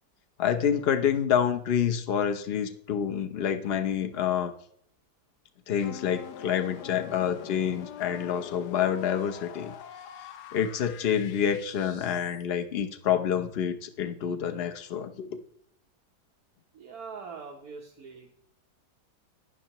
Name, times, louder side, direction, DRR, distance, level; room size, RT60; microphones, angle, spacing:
voice 1, 0.4-4.5 5.7-9.7 10.5-15.4, left 8 dB, 50° left, 7 dB, 0.7 m, -27 dB
sound 1, 5.8-12.4, left 9 dB, 75° left, 1.2 m, -44 dB
voice 2, 16.7-18.3, right 5 dB, 65° right, 1 dB, 1.4 m, -43 dB
11.0 x 9.7 x 2.9 m, 0.67 s
omnidirectional pair, 1.8 m